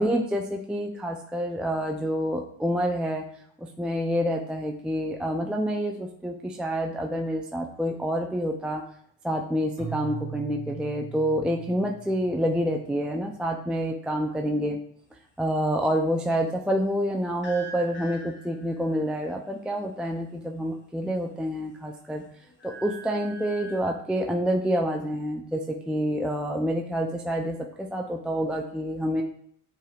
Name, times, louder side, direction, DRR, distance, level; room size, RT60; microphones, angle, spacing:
voice 1, 0.0-3.3 3.6-8.8 9.2-14.8 15.4-22.2 22.6-29.2, equal, ahead, 2 dB, 0.4 m, -28 dB
Keyboard (musical), 9.8-12.9, right 7 dB, 45° right, 1.5 m, -39 dB
sound 1, 17.4-18.9 20.9-21.6 22.0-23.8, right 2 dB, 25° left, 1.4 m, -43 dB
6.3 x 3.4 x 2.4 m, 0.66 s
supercardioid pair, 70°, 42 cm